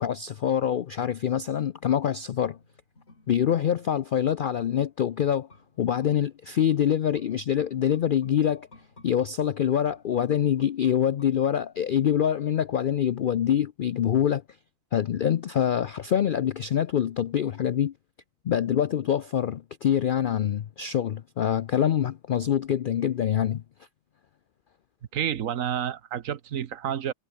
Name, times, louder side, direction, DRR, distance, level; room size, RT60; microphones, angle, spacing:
voice 1, 0.0-2.6 3.3-5.5 5.8-8.7 9.0-14.4 14.9-17.9 18.4-23.6, left 9 dB, 65° left, 0.5 m, -25 dB
sound 1, 2.3-11.8 12.1-12.2, left 2 dB, 50° left, 4.3 m, -57 dB
voice 2, 25.1-27.1, right 9 dB, 70° right, 1.3 m, -29 dB
omnidirectional pair, 1.5 m